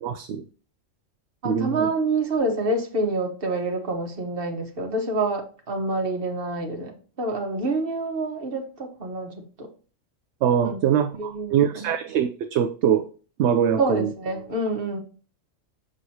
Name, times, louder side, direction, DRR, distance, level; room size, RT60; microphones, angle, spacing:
voice 1, 0.0-0.4 1.4-1.9 10.4-13.0 13.4-14.1, right 8 dB, 65° right, 8 dB, 0.8 m, -23 dB
voice 2, 1.4-6.9 7.2-9.3 10.6-10.8 11.1-11.9 13.8-15.0, right 2 dB, 45° right, 3 dB, 1.4 m, -27 dB
6.4 x 6.1 x 2.8 m, 0.37 s
omnidirectional pair, 1.3 m